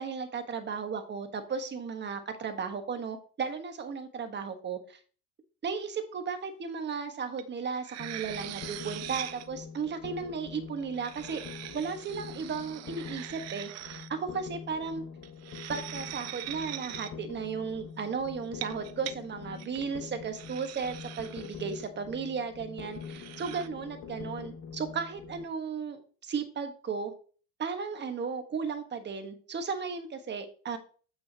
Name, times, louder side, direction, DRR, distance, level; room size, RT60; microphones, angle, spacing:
voice 1, 0.0-5.0 5.6-11.4 11.7-15.0 15.7-27.1 27.6-30.8, right 5 dB, 35° right, 7 dB, 1.4 m, -35 dB
sound 1, 7.4-7.5 7.8-9.5 10.8-14.1 15.2-17.1 18.4-19.2 19.6-19.8 20.3-21.9 22.9-23.7, right 14 dB, 55° right, 0.6 m, -42 dB
sound 2, 8.0-25.5, left 6 dB, 45° left, 1.3 m, -45 dB
7.9 x 6.3 x 2.9 m, 0.40 s
supercardioid pair, 100°, 32 cm